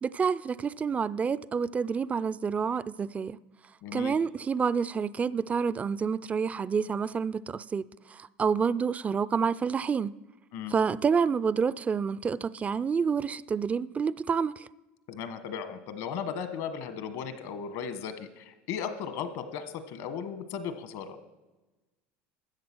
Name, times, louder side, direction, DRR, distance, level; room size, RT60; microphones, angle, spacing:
voice 1, 0.0-3.4 3.9-10.1 10.7-14.7, right 6 dB, 25° right, 0.4 m, -28 dB
voice 2, 3.8-4.1 10.5-10.7 15.1-21.2, left 7 dB, 70° left, 1.3 m, -36 dB
13.0 x 7.9 x 6.1 m
hypercardioid pair, 90°, 6 cm